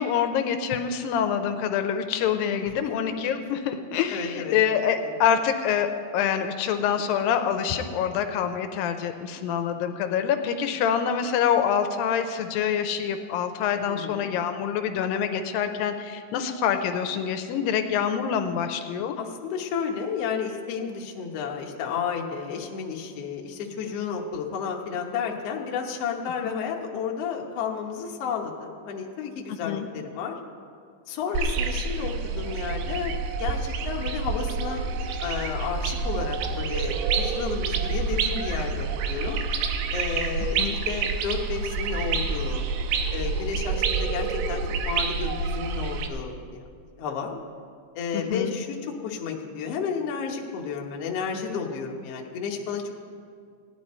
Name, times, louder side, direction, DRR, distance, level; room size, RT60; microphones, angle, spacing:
voice 1, 0.0-19.2 26.4-26.6 29.7-29.9 40.6-40.8 48.1-48.5, left 8 dB, 80° left, 8 dB, 2.3 m, -26 dB
voice 2, 2.5-3.1 4.1-4.6 5.0-5.1 13.8-14.3 19.2-30.4 31.1-34.8 35.2-39.4 39.9-42.7 43.1-46.7 47.0-47.4 47.9-52.9, left 6 dB, 65° left, 0 dB, 1.6 m, -32 dB
sound 1, 31.3-46.1, right 5 dB, 85° right, 2.6 m, -28 dB
17.0 x 10.0 x 4.3 m, 2.2 s
omnidirectional pair, 4.1 m